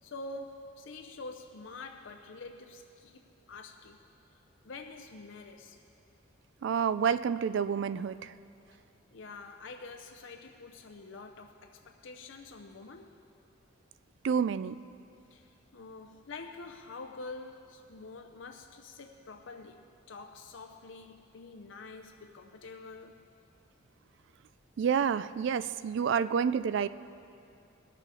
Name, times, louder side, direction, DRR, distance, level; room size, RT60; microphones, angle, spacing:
voice 1, 0.0-4.0 4.3-5.8 9.1-13.2 15.3-23.3 25.6-25.7, left 3 dB, 65° left, 5 dB, 0.6 m, -47 dB
voice 2, 6.6-8.3 14.2-14.8 24.8-26.9, right 7 dB, 60° right, 15 dB, 0.3 m, -29 dB
20.0 x 6.8 x 4.8 m, 2.5 s
head